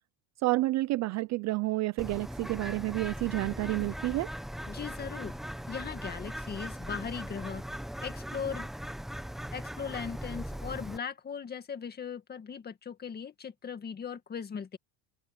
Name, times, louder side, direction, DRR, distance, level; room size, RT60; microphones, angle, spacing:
voice 1, 0.4-4.3, right 20 dB, 40° right, 0.4 m, -30 dB
Bird, 2.0-11.0, equal, ahead, 0.9 m, -39 dB
voice 2, 4.7-5.4 5.7-7.7 8.0-8.7 9.5-14.8, left 7 dB, 20° left, 2.0 m, -39 dB
cardioid pair, 160°, 45 cm